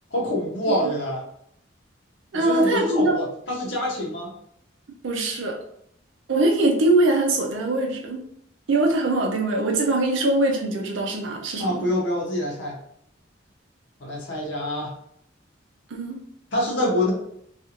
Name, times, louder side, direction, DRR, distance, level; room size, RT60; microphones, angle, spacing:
voice 1, 0.1-1.2 2.3-4.3 11.6-12.8 14.0-14.9 16.5-17.1, left 1 dB, 75° left, -2 dB, 0.8 m, -26 dB
voice 2, 2.3-3.1 5.0-5.6 6.3-8.3 8.7-11.9 15.9-16.2, right 2 dB, 85° right, 1 dB, 0.5 m, -22 dB
2.5 x 2.4 x 2.8 m, 0.70 s
head